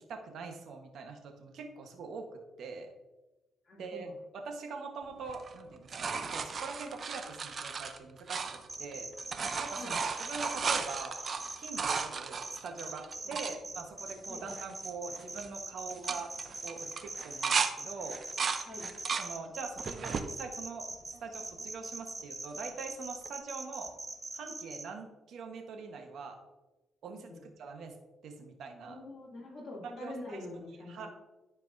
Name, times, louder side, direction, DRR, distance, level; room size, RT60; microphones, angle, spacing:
voice 1, 0.0-2.9 3.8-4.1 4.3-9.1 9.6-11.1 11.6-16.3 16.6-18.2 19.2-20.9 21.2-23.9 24.3-26.4 27.0-27.9 28.2-29.0 29.8-30.4 30.9-31.1, right 4 dB, 70° right, 4 dB, 1.2 m, -43 dB
voice 2, 3.7-4.1 9.8-10.0 13.2-13.3 14.3-14.4 18.6-18.9 27.1-27.4 28.9-31.1, left 2 dB, 40° left, -4 dB, 2.6 m, -45 dB
sound 1, 5.3-8.9 9.2-13.5 14.1-14.2 14.4-14.9 15.2-15.5 15.9-17.7 18.1-19.3 19.8-20.3 20.9-21.6 23.3-23.4, right 5 dB, 45° right, 0.7 m, -35 dB
sound 2, 8.7-12.0 12.4-24.8, right 2 dB, 20° right, 0.9 m, -42 dB
13.0 x 4.6 x 2.6 m, 1.1 s
cardioid pair, 90°, 0 cm